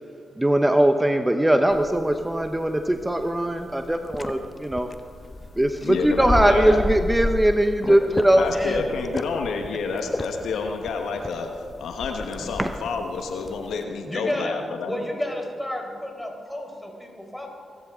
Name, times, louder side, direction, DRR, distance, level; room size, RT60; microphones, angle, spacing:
voice 1, 0.4-4.9 5.6-8.5 12.6-12.7, right 1 dB, 15° right, 7 dB, 0.9 m, -20 dB
sound 1, 1.7-13.8, left 2 dB, 30° left, 1.2 m, -34 dB
voice 2, 5.8-6.8 7.9-8.0 8.3-14.9, left 4 dB, 75° left, 4 dB, 1.2 m, -29 dB
voice 3, 8.4-8.8 14.1-14.6 14.8-17.5, left 1 dB, 10° left, 1 dB, 4.4 m, -31 dB
23.0 x 13.5 x 3.7 m, 2.3 s
hypercardioid pair, 40°, 0 cm